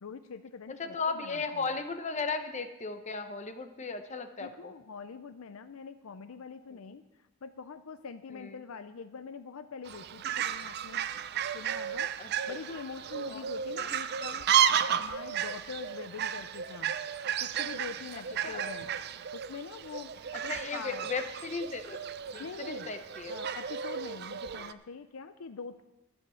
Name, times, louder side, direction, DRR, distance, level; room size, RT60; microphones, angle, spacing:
voice 1, 0.0-1.7 4.4-7.0 7.4-11.1 11.5-12.1 12.5-14.5 15.0-17.0 17.4-18.9 19.3-20.1 20.4-21.0 22.4-22.9 23.3-25.8, left 5 dB, 90° left, 11 dB, 0.5 m, -44 dB
voice 2, 0.8-4.7 8.3-8.6 12.2-12.6 13.3-13.4 18.4-18.7 20.5-22.0 22.3-23.3, left 4 dB, 35° left, 8 dB, 0.8 m, -36 dB
Fowl, 9.8-24.7, right 9 dB, 50° right, 0.4 m, -33 dB
13.0 x 6.2 x 7.0 m, 1.0 s
head